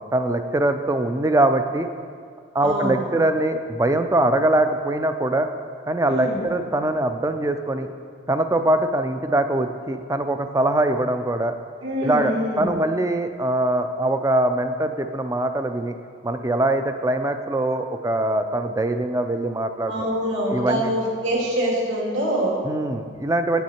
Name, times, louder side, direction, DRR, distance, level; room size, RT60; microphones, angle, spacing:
voice 1, 0.1-1.9 2.5-5.5 5.9-7.9 8.3-11.5 12.0-15.9 16.2-20.1 20.5-20.9 22.6-23.6, right 1 dB, 15° right, 8 dB, 0.4 m, -22 dB
voice 2, 2.6-3.1 6.1-6.4 11.8-12.8 19.9-22.6, equal, 75° right, -4 dB, 2.6 m, -25 dB
9.1 x 8.3 x 4.4 m, 2.1 s
head